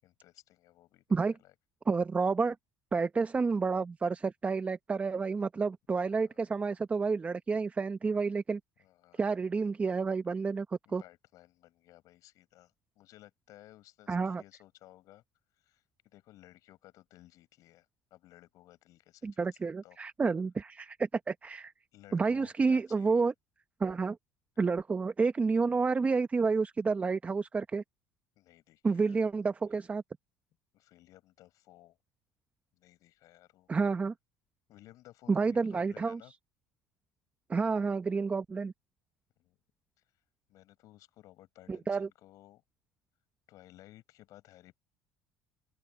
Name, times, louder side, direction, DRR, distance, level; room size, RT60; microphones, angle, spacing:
voice 1, 0.0-1.5 6.0-6.5 8.8-9.3 10.9-15.2 15.5-19.4 19.8-20.0 21.9-23.3 28.4-29.3 30.7-32.0 32.7-33.7 34.7-36.3 39.4-39.6 40.0-40.1 40.5-42.6 43.5-44.8, left 15 dB, 65° left, 7.5 m, -58 dB
voice 2, 1.9-2.6 2.9-8.6 9.1-10.7 10.9-11.0 14.1-14.4 19.2-21.7 22.1-23.3 23.8-24.2 24.6-27.8 28.8-30.0 33.7-34.1 35.3-36.2 37.5-38.7 41.7-42.1, right 4 dB, 25° right, 0.9 m, -29 dB
open air
supercardioid pair, 100°, 6 cm